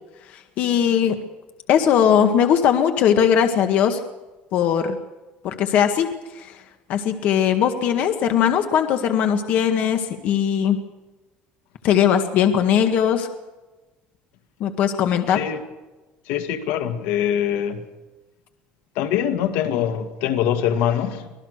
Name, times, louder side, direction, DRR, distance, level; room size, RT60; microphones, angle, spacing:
voice 1, 0.3-1.2 1.7-4.0 4.5-5.0 5.4-6.1 6.4-6.5 6.9-10.8 11.8-13.3 14.6-15.4, left 8 dB, 50° left, 6 dB, 1.8 m, -19 dB
voice 2, 15.3-15.6 16.3-17.9 19.0-21.3, left 9 dB, 75° left, 7 dB, 2.1 m, -23 dB
25.5 x 18.5 x 6.6 m, 1.1 s
cardioid pair, 160°, 3 cm